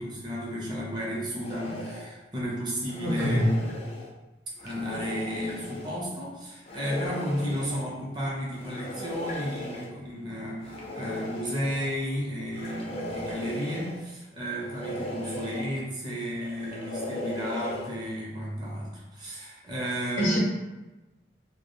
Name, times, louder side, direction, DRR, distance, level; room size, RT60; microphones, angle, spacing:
voice 1, 0.0-3.6 4.6-20.4, equal, 25° right, -4 dB, 0.5 m, -33 dB
sound 1, 1.4-2.1 2.8-4.1 4.6-5.9 6.7-7.8 8.5-9.9 10.6-11.9 12.5-14.0 14.6-15.7 16.3-17.9, left 1 dB, 30° left, 0.4 m, -37 dB
voice 2, 3.0-3.6 20.2-20.4, equal, 85° left, -5 dB, 0.6 m, -24 dB
2.2 x 2.1 x 3.0 m, 1.1 s
head